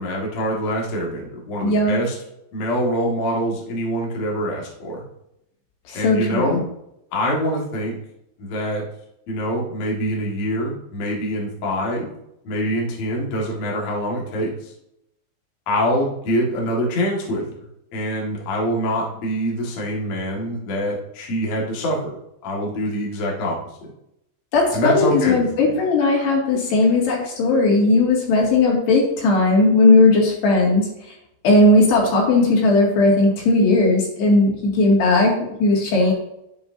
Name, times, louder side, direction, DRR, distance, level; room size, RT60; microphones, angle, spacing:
voice 1, 0.0-2.2 2.5-5.0 5.9-6.6 7.1-7.9 8.4-8.8 9.3-12.1 12.4-14.7 15.7-17.4 17.9-22.1 22.4-23.6 24.7-25.5, equal, 50° left, -2 dB, 2.2 m, -24 dB
voice 2, 1.6-2.0 5.9-6.6 24.5-30.9 31.4-36.1, left 2 dB, 70° left, -2 dB, 4.3 m, -17 dB
11.5 x 8.2 x 2.7 m, 0.81 s
omnidirectional pair, 5.1 m